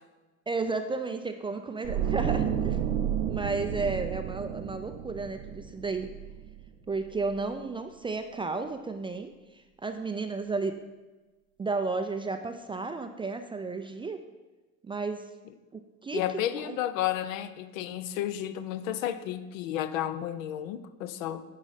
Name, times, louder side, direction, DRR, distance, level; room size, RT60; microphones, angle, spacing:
voice 1, 0.5-2.8 3.3-6.1 6.9-10.8 11.6-14.2 14.8-15.2 15.7-16.2 16.6-16.8, right 3 dB, 15° right, 0.4 m, -33 dB
sound 1, 1.8-6.9 7.2-7.5, right 9 dB, 70° right, 0.7 m, -31 dB
voice 2, 16.1-21.4, left 11 dB, 70° left, 0.6 m, -32 dB
10.5 x 4.9 x 4.1 m
hypercardioid pair, 70°, 41 cm